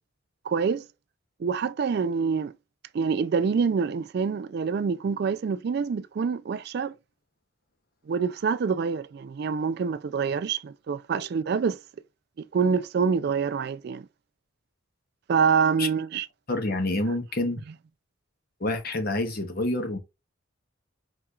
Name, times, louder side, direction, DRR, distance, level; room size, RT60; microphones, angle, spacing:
voice 1, 0.5-0.8 1.4-2.5 2.9-6.9 8.1-11.8 12.5-14.1 15.3-16.3, right 5 dB, 50° right, 0.3 m, -26 dB
voice 2, 16.5-17.6 18.6-20.0, left 2 dB, 45° left, 1.1 m, -27 dB
4.9 x 4.3 x 2.4 m
head